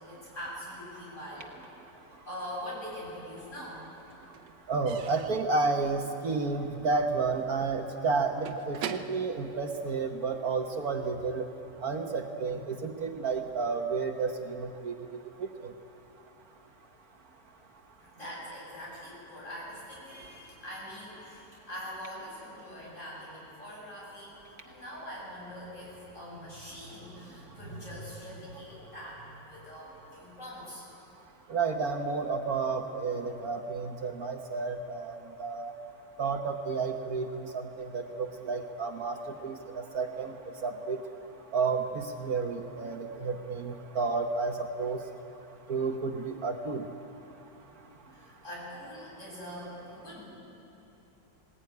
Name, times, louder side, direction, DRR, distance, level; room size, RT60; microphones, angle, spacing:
voice 1, 0.1-1.5 2.3-3.9 18.1-24.4 24.6-30.8 48.1-50.3, equal, 45° left, -5 dB, 8.0 m, -43 dB
Slam / Squeak / Wood, 2.6-3.4 3.7-10.5, right 9 dB, 90° right, 1.5 m, -45 dB
voice 2, 4.7-11.4 11.8-14.9 15.4-15.5 31.5-35.7 36.2-39.2 39.4-40.3 40.6-41.0 41.5-45.0 45.7-46.9, right 4 dB, 60° right, 4 dB, 1.5 m, -31 dB
20.5 x 19.0 x 9.4 m, 2.9 s
omnidirectional pair, 1.9 m